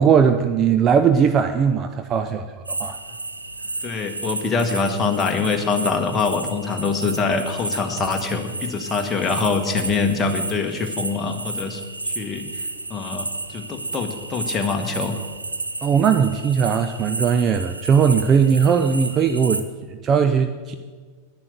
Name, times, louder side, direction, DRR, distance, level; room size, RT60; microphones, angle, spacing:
voice 1, 0.0-3.0 15.8-20.7, right 7 dB, 30° right, 8 dB, 0.6 m, -19 dB
sound 1, 2.7-19.6, right 2 dB, 80° right, 0.7 m, -32 dB
voice 2, 3.8-12.5 12.9-15.2, left 4 dB, 20° left, 4 dB, 1.4 m, -24 dB
10.5 x 10.0 x 6.8 m, 1.5 s
figure-of-eight pair, 90°, 0 cm